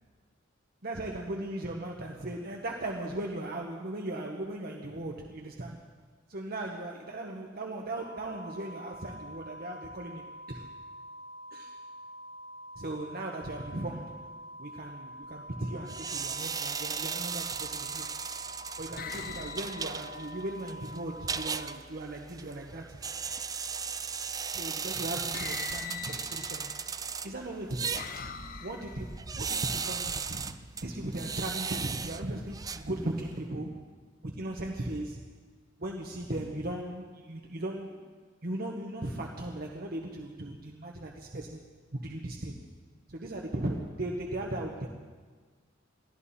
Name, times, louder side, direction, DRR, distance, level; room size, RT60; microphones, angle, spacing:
voice 1, 0.8-5.9 6.3-10.7 11.5-11.8 12.8-18.1 18.8-23.0 24.5-26.7 27.2-28.0 28.6-33.9 34.2-35.3 35.8-38.1 38.4-41.6 41.9-42.6 43.1-44.9, right 1 dB, 50° right, 0 dB, 1.3 m, -37 dB
sound 1, 8.0-21.8, equal, 65° left, 1.3 m, -46 dB
sound 2, 15.9-33.4, right 6 dB, 20° right, 0.5 m, -37 dB
sound 3, 16.7-17.0 17.9-18.3 19.0-21.0 23.2-23.8 24.8-24.9 25.3-27.0 27.5-29.2, left 6 dB, 45° left, 0.9 m, -43 dB
22.5 x 15.0 x 4.3 m, 1.5 s
head